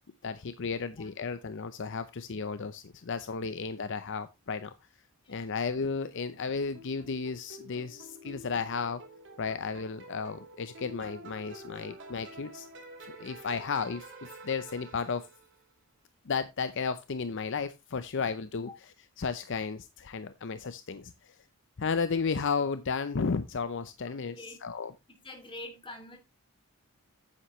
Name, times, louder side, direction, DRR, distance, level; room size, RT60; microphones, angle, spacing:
voice 1, 0.2-4.7 5.3-9.0 9.4-12.7 13.0-14.1 14.4-15.3 16.3-18.7 19.2-21.4 21.8-24.9, left 5 dB, 55° left, 0.6 m, -33 dB
sound 1, 6.7-15.6, right 1 dB, 55° right, 3.2 m, -49 dB
voice 2, 18.4-18.7 24.1-24.6 25.1-26.2, left 2 dB, 25° left, 2.6 m, -46 dB
9.5 x 8.9 x 3.1 m
head